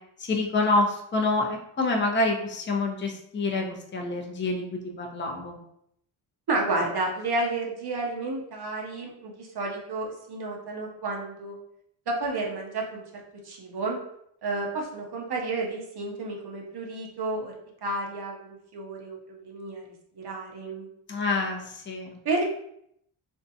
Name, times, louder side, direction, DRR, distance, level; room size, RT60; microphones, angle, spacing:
voice 1, 0.2-5.6 21.1-22.2, left 2 dB, 25° left, 1 dB, 0.5 m, -27 dB
voice 2, 6.5-11.6 12.1-13.0 13.4-14.0 14.4-17.5 17.8-19.2 19.4-19.8 20.2-20.9 22.2-22.5, right 2 dB, 55° right, 0 dB, 0.6 m, -31 dB
2.6 x 2.2 x 2.6 m, 0.74 s
cardioid pair, 55°, 48 cm